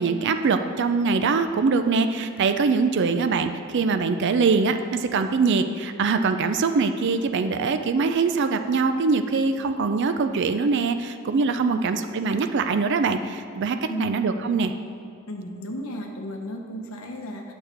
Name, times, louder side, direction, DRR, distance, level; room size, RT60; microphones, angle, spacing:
voice 1, 0.0-14.7, right 4 dB, 55° right, 8 dB, 0.4 m, -23 dB
voice 2, 11.6-11.9 13.9-14.2 15.3-17.5, equal, 70° left, 2 dB, 1.0 m, -34 dB
8.7 x 6.6 x 4.4 m, 2.6 s
head